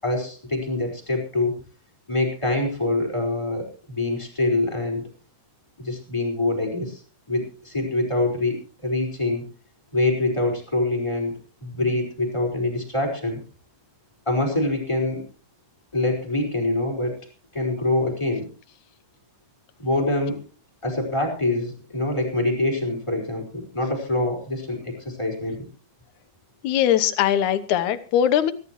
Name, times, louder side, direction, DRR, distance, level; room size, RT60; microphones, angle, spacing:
voice 1, 0.0-1.6 2.1-5.0 5.8-7.0 7.3-9.5 9.9-11.3 11.6-13.4 14.3-15.2 15.9-17.2 17.5-18.5 19.8-20.4 20.8-25.6, left 2 dB, 10° left, 2 dB, 4.8 m, -25 dB
voice 2, 26.6-28.5, left 10 dB, 75° left, 10 dB, 2.4 m, -20 dB
24.0 x 12.5 x 3.1 m, 0.37 s
omnidirectional pair, 3.6 m